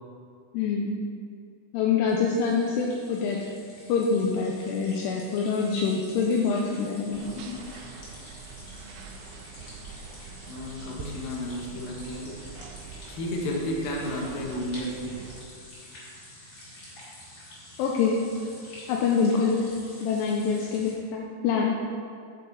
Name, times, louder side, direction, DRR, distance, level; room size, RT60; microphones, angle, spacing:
voice 1, 0.5-1.0 1.7-3.4 3.9-7.6 17.8-18.2 18.9-19.6 20.0-21.8, left 5 dB, 80° left, -1 dB, 2.5 m, -25 dB
sound 1, 2.1-20.9, left 1 dB, 45° left, 2.3 m, -48 dB
sound 2, 7.1-15.5, right 5 dB, 80° right, 2.7 m, -44 dB
voice 2, 10.5-12.4 13.1-15.1, left 1 dB, 65° left, -1 dB, 2.5 m, -32 dB
9.9 x 7.5 x 4.0 m, 2.3 s
omnidirectional pair, 5.2 m